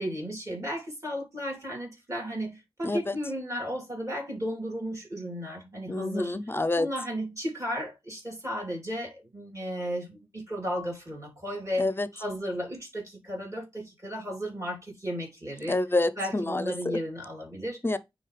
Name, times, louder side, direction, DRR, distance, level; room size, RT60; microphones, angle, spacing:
voice 1, 0.0-6.3 6.7-11.9 12.1-15.8 16.2-17.8, equal, 35° right, 3.2 m, -34 dB
voice 2, 2.8-3.1 5.9-6.9 11.8-12.1 15.7-17.0 17.8-18.0, left 2 dB, 25° left, 0.6 m, -27 dB
9.3 x 3.3 x 3.3 m
wide cardioid pair, 70°, 9 cm